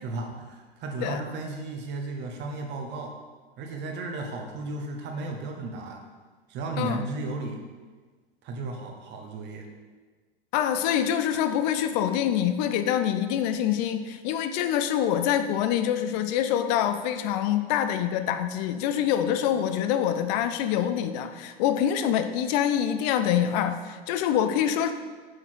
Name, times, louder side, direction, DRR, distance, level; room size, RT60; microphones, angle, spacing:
voice 1, 0.0-3.1 3.6-6.0 6.5-7.6 8.4-9.7, right 2 dB, 35° right, 2 dB, 1.3 m, -34 dB
voice 2, 10.5-24.9, left 10 dB, 40° left, 9 dB, 0.6 m, -25 dB
6.4 x 5.7 x 4.6 m, 1.4 s
figure-of-eight pair, 90°, 31 cm